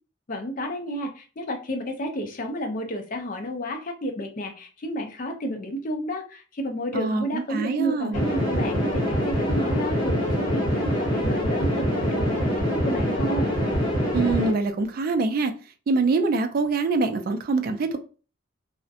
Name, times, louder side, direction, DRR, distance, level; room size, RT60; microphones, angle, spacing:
voice 1, 0.3-13.5, equal, 45° left, 0.5 m, -31 dB
voice 2, 6.9-8.2 14.1-15.5 15.9-18.0, right 3 dB, 45° right, 0.3 m, -24 dB
sound 1, 8.1-14.5, equal, 20° left, 0.9 m, -24 dB
2.6 x 2.1 x 2.5 m
head